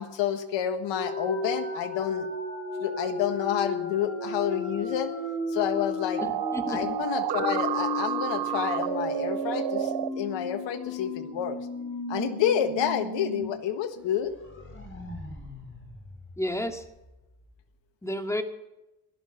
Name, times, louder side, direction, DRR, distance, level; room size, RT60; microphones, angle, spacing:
voice 1, 0.0-2.3 2.8-5.1 5.5-6.2 6.7-11.6 12.1-14.4, left 9 dB, 75° left, 9 dB, 1.7 m, -29 dB
sound 1, 1.0-13.4 13.8-13.9 14.2-16.9, left 2 dB, 25° left, 5.0 m, -35 dB
voice 2, 6.2-7.0 16.4-16.8 18.0-18.4, equal, 5° left, 5 dB, 2.3 m, -31 dB
sound 2, 6.2-10.1, right 14 dB, 65° right, 0.8 m, -30 dB
17.0 x 12.0 x 5.8 m, 0.95 s
supercardioid pair, 65°, 44 cm